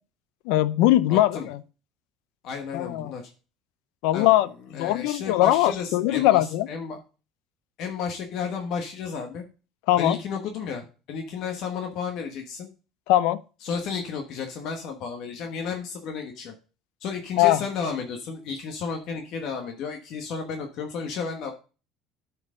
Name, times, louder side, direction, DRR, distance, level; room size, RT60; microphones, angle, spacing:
voice 1, 0.5-1.6 2.7-3.1 4.0-6.7 9.9-10.2 13.1-13.4 17.4-17.6, left 15 dB, 80° left, 0.5 m, -21 dB
voice 2, 1.1-1.5 2.4-3.2 4.1-4.3 4.7-7.0 7.8-9.4 10.0-12.7 13.6-16.5 17.0-21.5, left 5 dB, 55° left, 1.2 m, -32 dB
13.0 x 4.6 x 3.7 m
cardioid pair, 150°, 0 cm